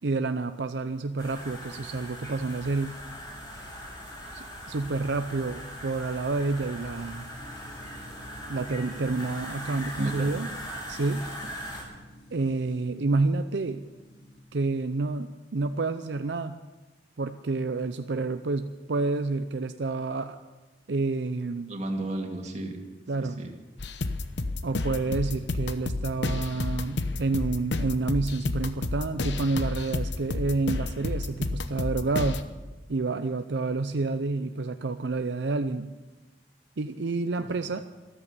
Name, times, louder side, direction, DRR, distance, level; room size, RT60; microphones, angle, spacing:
voice 1, 0.0-3.0 4.3-7.3 8.5-10.5 10.9-11.2 12.3-13.8 14.5-16.6 17.2-20.4 20.9-21.7 23.1-23.4 24.6-32.4 32.9-35.9 36.8-37.8, right 3 dB, 75° right, 9 dB, 0.6 m, -29 dB
sound 1, 1.2-11.8, equal, 25° left, 5.9 m, -40 dB
sound 2, 7.3-14.4, equal, 60° left, 6.6 m, -51 dB
voice 2, 10.0-10.3 11.7-11.8 21.7-22.8 23.2-23.5 37.3-37.5, right 1 dB, 40° right, 2 dB, 2.2 m, -34 dB
sound 3, 23.8-32.4, left 2 dB, 80° left, 0.9 m, -31 dB
14.0 x 13.5 x 6.8 m, 1.2 s
head